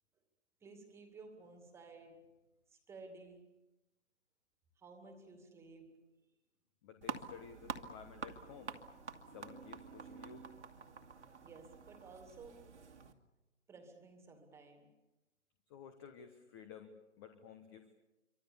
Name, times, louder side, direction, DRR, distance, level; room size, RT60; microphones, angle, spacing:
voice 1, 0.6-2.3 2.7-3.5 4.8-6.1 11.4-12.7 13.7-14.9, right 3 dB, 5° right, 2.3 m, -55 dB
voice 2, 6.8-8.7 9.3-10.4 15.7-17.9, left 7 dB, 20° left, 1.1 m, -53 dB
sound 1, 7.0-13.1, right 5 dB, 65° right, 2.4 m, -48 dB
27.0 x 24.5 x 7.0 m
hypercardioid pair, 150°, 38 cm